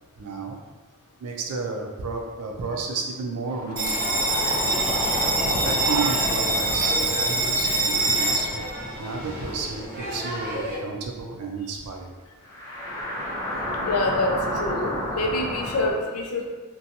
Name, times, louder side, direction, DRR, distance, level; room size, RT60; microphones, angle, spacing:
voice 1, 0.2-0.6 1.2-4.2 5.4-8.6 8.9-12.1, right 4 dB, 85° right, 1 dB, 0.4 m, -32 dB
sound 1, 3.4-10.0 10.3-10.4 12.4-15.9, left 1 dB, 15° left, 0.7 m, -32 dB
Bell, 3.8-10.8, right 2 dB, 40° right, 0.6 m, -25 dB
voice 2, 13.8-16.5, left 2 dB, 80° left, 1 dB, 0.4 m, -26 dB
2.6 x 2.2 x 2.7 m, 1.4 s
head